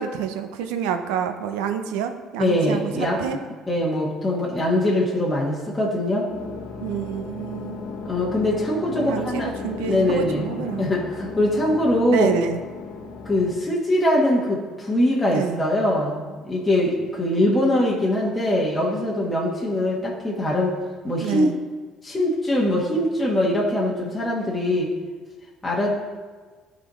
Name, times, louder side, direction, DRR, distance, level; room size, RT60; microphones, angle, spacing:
voice 1, 0.0-3.4 6.8-7.9 9.0-10.8 12.1-12.6 15.3-15.6 21.2-21.5, right 7 dB, 90° right, 8 dB, 0.5 m, -28 dB
voice 2, 2.4-3.2 3.7-6.3 8.0-9.5 9.9-10.5 10.8-12.3 13.2-20.8 21.0-21.5 22.0-24.9 25.6-26.0, left 1 dB, 15° left, -5 dB, 1.4 m, -22 dB
sound 1, 6.3-13.6, left 5 dB, 85° left, 1.1 m, -36 dB
12.0 x 4.1 x 3.1 m, 1.4 s
supercardioid pair, 85°, 0 cm